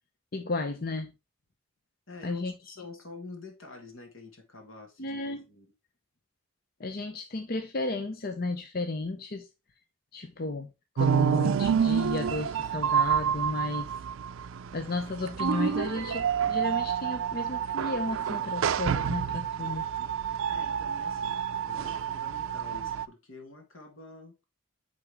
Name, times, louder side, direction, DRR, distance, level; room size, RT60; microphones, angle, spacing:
voice 1, 0.3-1.1 2.2-2.5 5.0-5.4 6.8-9.5 10.1-10.7 10.9-13.9 14.7-19.9, left 2 dB, 50° left, 0.7 m, -33 dB
voice 2, 2.1-5.7 20.5-24.4, left 3 dB, 85° left, 2.0 m, -47 dB
sound 1, 11.0-23.1, right 7 dB, 85° right, 0.4 m, -28 dB
8.0 x 3.8 x 3.5 m
head